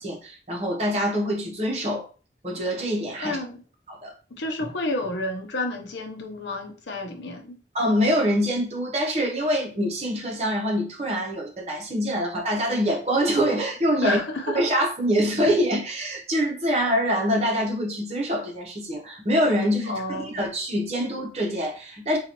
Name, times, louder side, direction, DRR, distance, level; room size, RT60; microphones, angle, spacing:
voice 1, 0.0-2.1 2.4-3.4 3.9-4.1 7.7-14.2 14.5-22.2, equal, 35° right, 0.9 m, -25 dB
voice 2, 3.2-3.6 4.3-7.6 14.0-14.6 19.9-20.4, left 2 dB, 85° left, 0.7 m, -30 dB
3.8 x 2.4 x 2.9 m
head